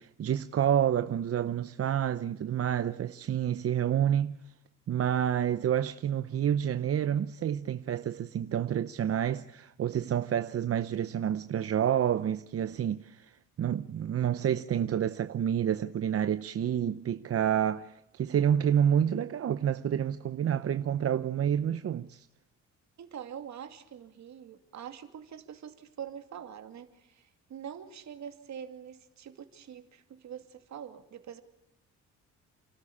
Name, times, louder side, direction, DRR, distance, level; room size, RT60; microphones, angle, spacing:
voice 1, 0.0-4.4 4.9-22.3, right 9 dB, 50° right, 0.8 m, -29 dB
voice 2, 23.0-31.4, right 8 dB, 65° right, 2.6 m, -44 dB
29.0 x 13.0 x 8.6 m
cardioid pair, 90°, 30 cm